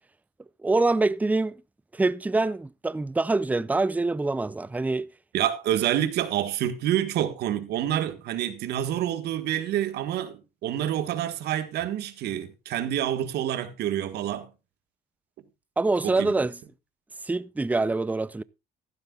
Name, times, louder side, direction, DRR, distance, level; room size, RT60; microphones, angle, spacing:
voice 1, 0.6-1.6 1.9-5.1 15.8-16.6 17.2-18.4, right 3 dB, 10° right, 0.5 m, -25 dB
voice 2, 5.3-14.5 16.0-16.3, right 11 dB, 75° right, 1.7 m, -28 dB
15.0 x 12.0 x 2.4 m
cardioid pair, 110°, 17 cm